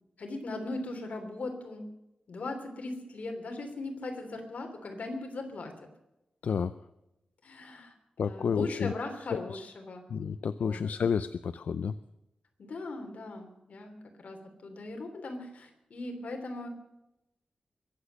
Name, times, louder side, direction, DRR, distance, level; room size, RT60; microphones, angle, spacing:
voice 1, 0.2-1.9 2.3-5.7 7.4-7.9 8.2-10.0 10.6-10.8 12.6-14.4 14.6-16.7, left 2 dB, 70° left, 4 dB, 3.1 m, -39 dB
voice 2, 8.2-8.9 9.3-9.4 10.1-11.9, left 6 dB, 90° left, 13 dB, 0.5 m, -30 dB
23.0 x 8.1 x 6.4 m, 0.90 s
wide cardioid pair, 125°, 3 cm